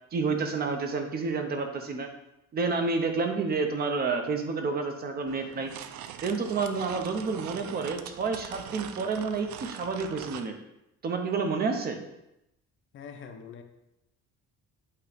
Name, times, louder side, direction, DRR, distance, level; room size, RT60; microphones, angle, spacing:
voice 1, 0.1-2.1 2.5-5.7 6.2-10.5 11.0-12.0, right 4 dB, 30° right, 5 dB, 0.7 m, -29 dB
sound 1, 5.3-10.5, right 10 dB, 70° right, 0.5 m, -42 dB
voice 2, 12.9-13.6, left 6 dB, 40° left, 6 dB, 0.6 m, -43 dB
8.4 x 3.1 x 5.1 m, 0.87 s
cardioid pair, 170°, 30 cm